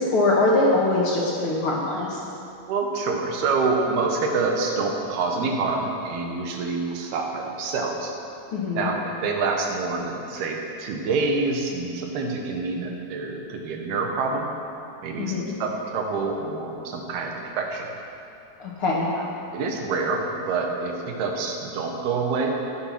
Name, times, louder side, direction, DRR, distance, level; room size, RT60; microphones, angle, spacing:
voice 1, 0.0-2.2 8.5-8.9 15.2-15.5 18.6-19.1, left 2 dB, 50° left, -4 dB, 1.8 m, -22 dB
voice 2, 2.7-8.1 8.8-14.5 15.0-17.9 19.2-22.5, right 4 dB, 70° right, 1 dB, 3.3 m, -27 dB
15.0 x 10.0 x 6.0 m, 2.6 s
omnidirectional pair, 4.8 m